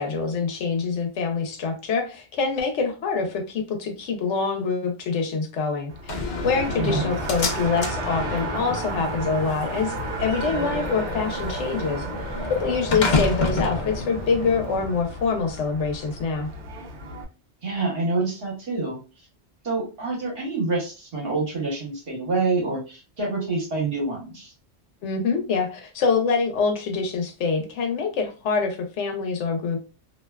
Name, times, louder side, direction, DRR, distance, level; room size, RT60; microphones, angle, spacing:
voice 1, 0.0-6.2 6.4-12.0 12.6-16.5 25.0-29.8, left 5 dB, 90° left, 3 dB, 0.9 m, -25 dB
Race car auto racing, 5.9-17.2, right 2 dB, 85° right, 0.9 m, -33 dB
Slam, 6.1-15.1, left 3 dB, 50° left, 0.6 m, -29 dB
voice 2, 6.8-7.1 17.6-19.0 19.6-24.5, right 3 dB, 55° right, -2 dB, 1.2 m, -27 dB
2.6 x 2.2 x 2.2 m, 0.32 s
omnidirectional pair, 1.2 m